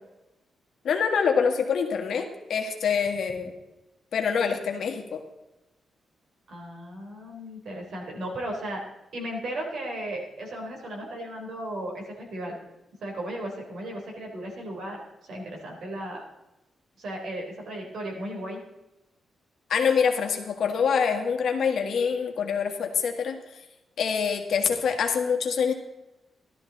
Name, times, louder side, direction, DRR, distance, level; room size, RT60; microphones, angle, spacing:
voice 1, 0.8-3.5 4.1-5.2 19.7-23.6 24.0-25.7, left 6 dB, 65° left, 3 dB, 1.7 m, -25 dB
voice 2, 6.5-8.8 9.1-12.6 13.0-16.2 17.0-18.6, right 1 dB, 60° right, 0 dB, 3.6 m, -35 dB
14.5 x 12.5 x 4.0 m, 0.98 s
wide cardioid pair, 175°, 0 cm